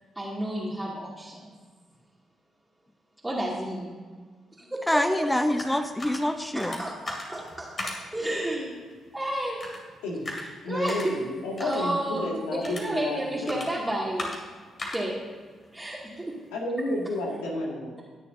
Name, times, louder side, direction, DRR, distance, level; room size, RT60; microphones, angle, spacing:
voice 1, 0.2-1.5 3.2-3.9 4.6-5.3 6.5-8.8 9.1-9.7 10.3-11.2 11.6-14.3 14.9-15.2 15.7-16.0, right 1 dB, 15° right, -6 dB, 2.5 m, -31 dB
voice 2, 4.9-6.8, left 1 dB, 10° left, 7 dB, 0.8 m, -26 dB
sound 1, 5.0-16.6, left 2 dB, 45° left, 2.5 m, -41 dB
voice 3, 10.0-10.4 10.6-13.8 16.5-18.0, left 1 dB, 80° left, -2 dB, 2.1 m, -31 dB
19.5 x 7.0 x 2.7 m, 1.5 s
hypercardioid pair, 45°, 0 cm